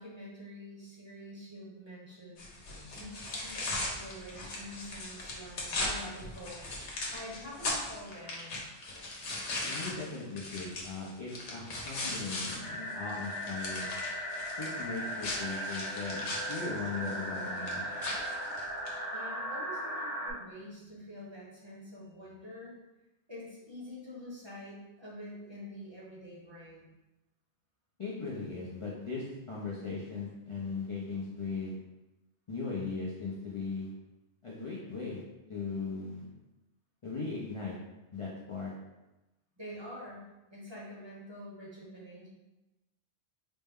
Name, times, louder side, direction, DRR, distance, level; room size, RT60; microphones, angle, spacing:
voice 1, 0.0-2.4 2.8-8.6 19.1-22.8 23.3-26.8 39.6-42.3, left 1 dB, 25° right, -7 dB, 0.8 m, -47 dB
sound 1, 2.4-12.6 12.9-19.0, left 2 dB, 85° left, 1.1 m, -38 dB
voice 2, 9.7-13.9 14.6-17.8 28.0-31.8 32.5-33.9 34.4-35.2 35.5-36.2 37.0-37.8 38.1-38.7, left 4 dB, 40° left, -6 dB, 0.5 m, -38 dB
sound 2, 12.6-20.3, equal, 85° right, 1.6 m, -37 dB
4.1 x 2.1 x 3.5 m, 1.0 s
omnidirectional pair, 1.2 m